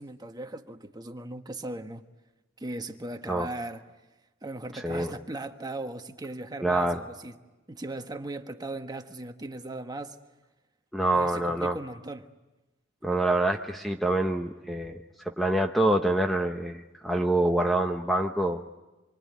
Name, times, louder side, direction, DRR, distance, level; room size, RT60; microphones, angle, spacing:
voice 1, 0.0-2.0 2.6-3.8 4.4-7.4 7.7-10.2 11.1-12.3, right 2 dB, 20° right, 1.3 m, -38 dB
voice 2, 4.7-5.1 6.6-7.0 10.9-11.8 13.0-15.0 15.2-18.6, right 1 dB, ahead, 0.9 m, -26 dB
26.5 x 24.0 x 9.5 m
head